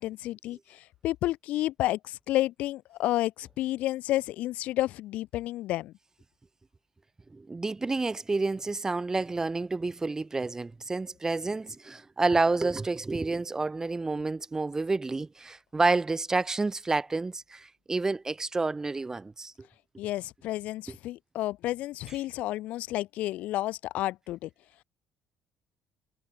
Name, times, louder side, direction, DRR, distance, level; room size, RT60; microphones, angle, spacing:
voice 1, 0.0-5.9 20.0-24.5, left 15 dB, 65° left, 0.5 m, -31 dB
voice 2, 7.3-19.5 20.9-21.0, right 3 dB, 20° right, 0.7 m, -29 dB
hypercardioid pair, 55°, 3 cm